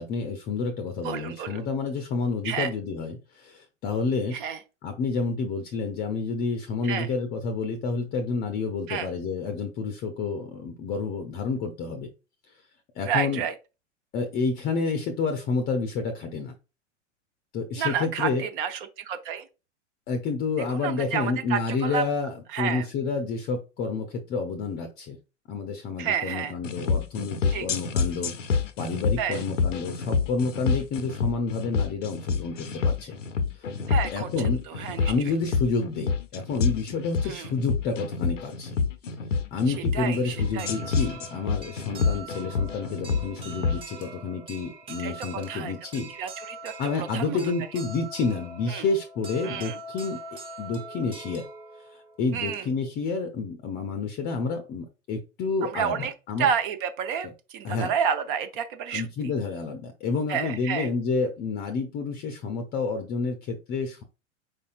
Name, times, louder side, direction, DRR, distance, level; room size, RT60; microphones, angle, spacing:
voice 1, 0.0-4.4 4.8-12.1 13.0-13.5 14.1-16.5 17.5-18.5 20.1-25.2 25.5-33.1 33.5-33.8 34.1-34.6 35.1-38.8 39.5-46.1 46.8-50.2 50.6-51.5 51.9-56.5 57.2-57.3 57.6-57.9 58.9-64.0, left 4 dB, 25° left, 0.6 m, -29 dB
voice 2, 1.0-1.6 2.4-2.7 4.3-4.6 6.8-7.1 8.9-9.1 13.1-13.5 17.8-19.4 20.8-22.0 22.5-22.8 26.0-26.5 27.5-27.7 29.2-29.4 33.9-34.3 34.7-35.1 37.2-37.5 39.9-40.7 45.0-45.1 45.5-45.7 46.2-46.7 47.1-47.4 48.7-48.9 49.4-49.8 52.3-52.6 55.6-56.1 56.4-59.1 60.3-60.9, right 7 dB, 45° right, 0.7 m, -30 dB
sound 1, 26.6-43.8, left 5 dB, 80° left, 0.6 m, -28 dB
sound 2, 40.4-53.0, right 2 dB, 15° right, 1.1 m, -43 dB
4.8 x 4.2 x 2.4 m
figure-of-eight pair, 95°, 37 cm